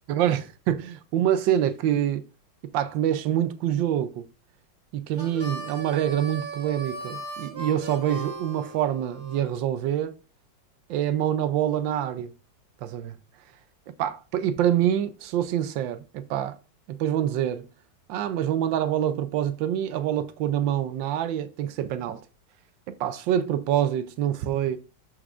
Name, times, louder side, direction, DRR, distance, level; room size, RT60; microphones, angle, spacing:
voice 1, 0.1-2.2 2.7-4.3 4.9-10.2 10.9-12.3 12.8-13.1 14.0-16.6 16.9-17.7 18.1-22.2 22.9-24.8, right 10 dB, 85° right, 1.4 m, -26 dB
Harmonica, 5.2-9.4, right 2 dB, 25° right, 1.5 m, -37 dB
14.0 x 4.7 x 2.5 m
omnidirectional pair, 2.0 m